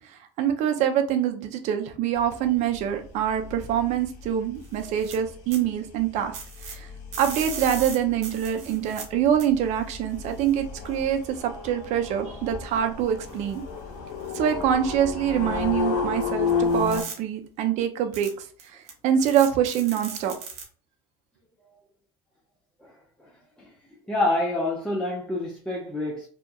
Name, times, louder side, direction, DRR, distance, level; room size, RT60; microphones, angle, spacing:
voice 1, 0.1-6.4 6.6-6.9 7.2-13.6 14.3-20.3, right 9 dB, 60° right, 0.5 m, -25 dB
sound 1, 2.2-17.0, left 5 dB, 70° left, 0.6 m, -33 dB
sound 2, 4.6-5.1 5.5-5.6 6.3-6.7 7.1-9.0 9.4-9.5 10.4-10.5 13.3-13.5 14.3-14.4 16.7-17.1 18.1-18.3 18.6-18.9 19.2-20.6, right 6 dB, 85° right, 0.8 m, -37 dB
voice 2, 24.1-26.3, left 2 dB, 5° left, 0.6 m, -27 dB
2.7 x 2.2 x 2.3 m
hypercardioid pair, 85°, 14 cm